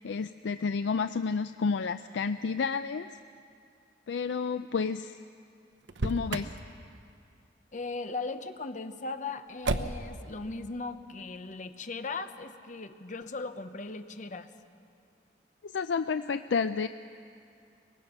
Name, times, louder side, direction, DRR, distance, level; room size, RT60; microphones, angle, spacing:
voice 1, 0.0-3.1 4.1-5.2 6.0-6.6 15.6-16.9, left 5 dB, 80° left, 11 dB, 0.4 m, -30 dB
Motor vehicle (road), 5.8-6.6 9.6-10.2, right 2 dB, 85° right, 0.9 m, -31 dB
voice 2, 7.7-14.5, left 3 dB, 45° left, 9 dB, 0.9 m, -38 dB
23.0 x 20.0 x 5.8 m, 2.4 s
head